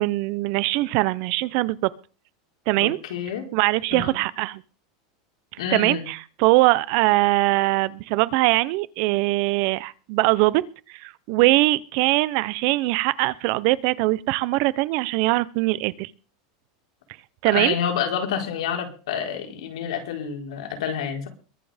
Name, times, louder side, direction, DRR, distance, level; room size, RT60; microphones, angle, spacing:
voice 1, 0.0-1.9 2.7-3.0 3.5-4.6 5.7-10.6 10.9-16.1 17.4-17.7, right 20 dB, 40° right, 0.7 m, -22 dB
voice 2, 2.8-3.5 3.9-4.1 5.6-6.1 17.5-21.3, left 8 dB, 85° left, 4.4 m, -28 dB
22.5 x 7.6 x 5.1 m
supercardioid pair, 175°, 3 cm